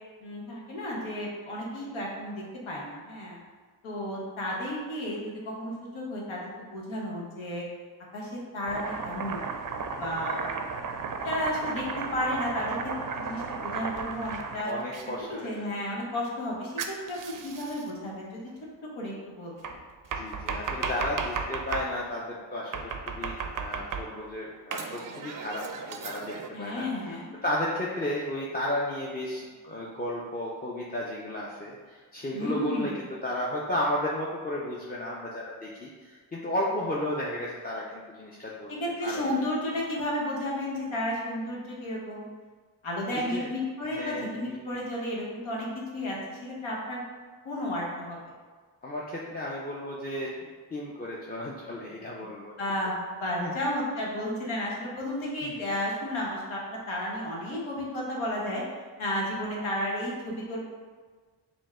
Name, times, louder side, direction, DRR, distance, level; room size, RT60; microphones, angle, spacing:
voice 1, 0.2-3.4 3.8-7.6 8.1-9.4 10.0-10.4 11.2-12.8 13.1-14.7 15.2-18.5 19.0-19.7 26.5-27.3 32.3-32.9 38.7-42.2 42.8-45.7 45.9-47.0 47.4-48.2 52.2-52.3 52.6-58.6 59.0-60.6, left 1 dB, 90° left, -4 dB, 1.1 m, -32 dB
Domestic sounds home sounds, 8.7-15.1 16.8-17.9 19.6-21.9 22.7-24.3 24.7-26.5, right 5 dB, 45° right, 0.4 m, -34 dB
voice 2, 14.6-15.7 20.1-25.6 25.9-38.7 39.0-39.3 43.1-43.5 43.8-44.6 48.8-50.3 50.7-52.5 53.4-53.5 55.4-55.6, left 1 dB, 20° left, -4 dB, 0.5 m, -33 dB
5.2 x 2.1 x 3.5 m, 1.5 s
cardioid pair, 65°, 46 cm